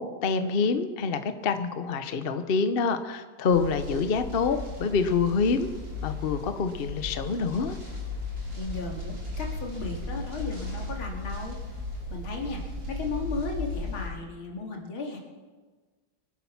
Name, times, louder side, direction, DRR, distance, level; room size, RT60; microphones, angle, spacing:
voice 1, 0.0-5.7 6.0-7.8, left 5 dB, 50° left, 9 dB, 0.6 m, -26 dB
sound 1, 3.5-14.1, left 2 dB, 40° right, 4.5 m, -36 dB
voice 2, 8.5-11.6 12.1-15.2, left 4 dB, 75° left, 1 dB, 3.1 m, -35 dB
24.5 x 8.7 x 5.8 m, 1.4 s
omnidirectional pair, 2.3 m